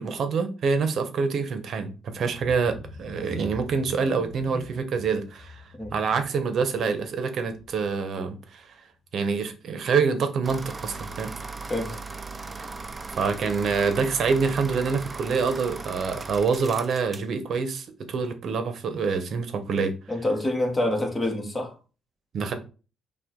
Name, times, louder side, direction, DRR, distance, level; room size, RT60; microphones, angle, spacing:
voice 1, 0.0-5.6 5.9-8.7 9.1-11.3 13.2-19.9 22.3-22.5, right 5 dB, 60° right, 0.8 m, -26 dB
sound 1, 2.3-8.0 8.4-8.7 9.0-9.1, left 3 dB, 35° left, 1.3 m, -44 dB
sound 2, 10.4-17.3, right 3 dB, 25° right, 0.5 m, -38 dB
voice 2, 20.1-21.7, left 1 dB, 15° left, 1.2 m, -26 dB
5.6 x 2.4 x 3.7 m
cardioid pair, 90°, 0 cm